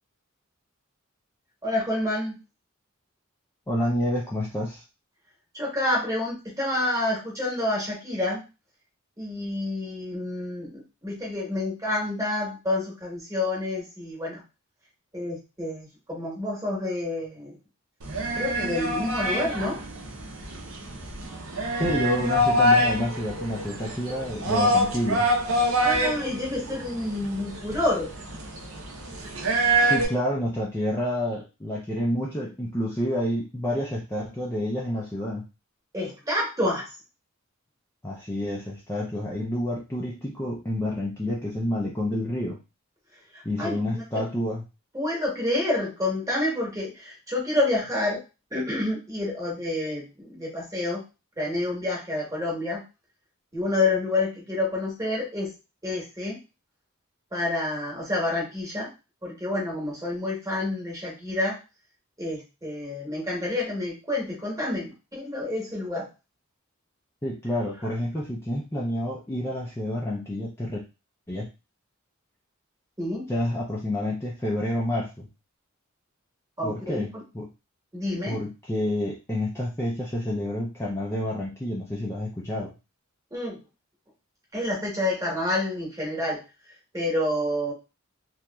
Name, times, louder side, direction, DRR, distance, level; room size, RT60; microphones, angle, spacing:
voice 1, 1.6-2.4 5.5-8.4 9.2-14.4 15.1-17.6 18.4-19.8 25.8-28.2 35.9-36.9 43.3-44.3 44.9-48.2 48.5-51.0 51.4-52.8 53.5-55.6 55.8-56.4 57.3-58.9 59.2-61.6 62.2-66.1 67.8-67.9 73.0-73.3 76.6-77.2 77.9-78.4 83.3-83.6 84.5-86.4 86.9-87.7, left 2 dB, 15° right, -4 dB, 1.1 m, -28 dB
voice 2, 3.7-4.8 21.8-25.3 29.8-35.4 38.0-42.6 43.4-44.6 67.2-70.8 71.3-71.5 73.3-75.3 76.6-77.1 77.3-77.5 78.3-82.7, left 1 dB, 15° left, -4 dB, 0.4 m, -29 dB
sound 1, 18.0-30.1, equal, 80° right, 0.7 m, -25 dB
2.9 x 2.5 x 2.2 m, 0.28 s
head